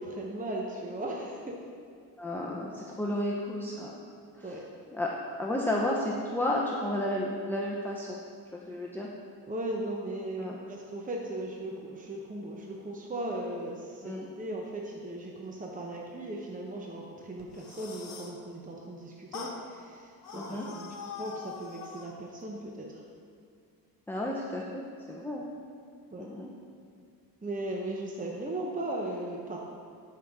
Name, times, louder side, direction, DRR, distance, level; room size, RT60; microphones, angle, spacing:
voice 1, 0.0-1.6 4.4-4.7 9.5-23.0 26.1-26.3 27.4-29.6, right 1 dB, 20° right, -1 dB, 0.9 m, -37 dB
voice 2, 2.2-3.9 4.4-4.6 4.9-5.1 5.4-8.2 8.5-9.1 10.4-10.6 14.0-14.3 20.3-20.7 24.1-24.8 25.1-25.4 26.2-26.5, left 1 dB, 5° left, -3 dB, 0.8 m, -32 dB
sound 1, 17.4-18.4 19.3-19.6 20.2-22.2, left 5 dB, 55° left, 1.3 m, -42 dB
12.5 x 5.7 x 3.7 m, 2.3 s
cardioid pair, 85°, 39 cm